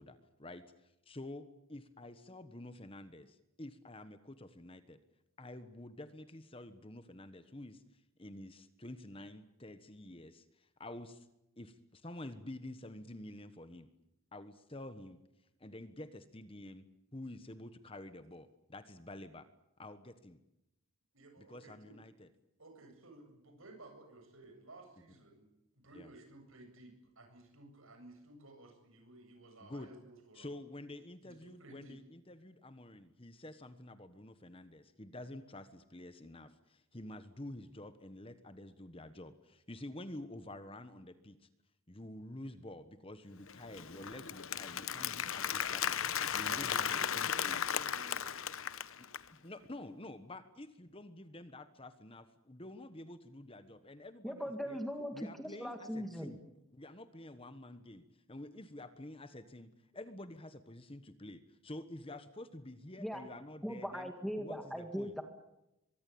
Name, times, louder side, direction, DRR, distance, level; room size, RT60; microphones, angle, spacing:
voice 1, 0.0-5.0 5.4-11.3 11.6-13.9 14.3-15.2 15.6-16.8 17.1-19.5 19.8-20.4 21.4-22.3 25.9-26.1 29.6-29.9 30.3-41.5 41.9-47.6 49.0-54.8 55.1-56.4 56.7-64.1 64.4-65.2, left 1 dB, 25° left, 11 dB, 1.3 m, -49 dB
voice 2, 21.1-22.0 22.6-25.5 25.8-30.5 31.2-32.0 46.4-48.4, right 2 dB, 65° right, 4 dB, 7.9 m, -55 dB
Applause, 43.5-49.3, left 8 dB, 65° left, 1.0 m, -36 dB
voice 3, 54.2-56.3 63.0-63.2 63.6-65.2, equal, ahead, 6 dB, 1.9 m, -39 dB
23.5 x 23.5 x 8.7 m, 0.89 s
head